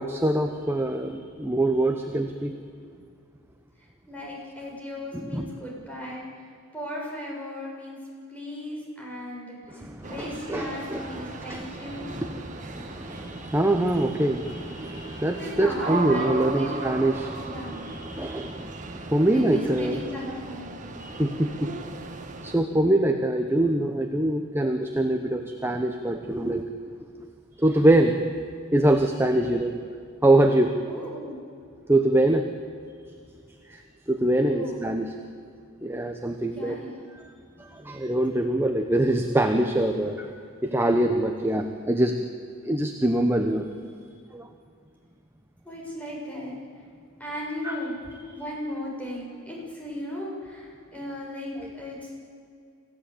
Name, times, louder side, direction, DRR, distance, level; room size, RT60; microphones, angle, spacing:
voice 1, 0.0-2.6 5.1-5.5 9.7-20.0 21.0-21.7 22.4-26.7 27.0-27.1 27.6-28.2 28.7-29.7 30.2-30.7 31.9-32.5 33.7-35.1 35.8-36.8 37.1-37.2 37.6-40.3 40.6-42.2 42.6-43.7 44.3-44.5 47.6-47.8 51.6-51.7, right 1 dB, 10° right, 5 dB, 1.1 m, -24 dB
voice 2, 4.1-6.3 6.7-8.0 8.3-9.6 10.0-12.1 15.4-16.7 17.4-17.8 19.2-20.7 30.9-31.4 34.4-34.8 36.6-36.9 45.7-46.5 47.2-47.9 48.3-52.1, left 1 dB, 5° left, -4 dB, 6.9 m, -36 dB
sound 1, 10.0-22.6, right 3 dB, 35° right, 1.8 m, -37 dB
26.5 x 16.0 x 8.6 m, 2.3 s
head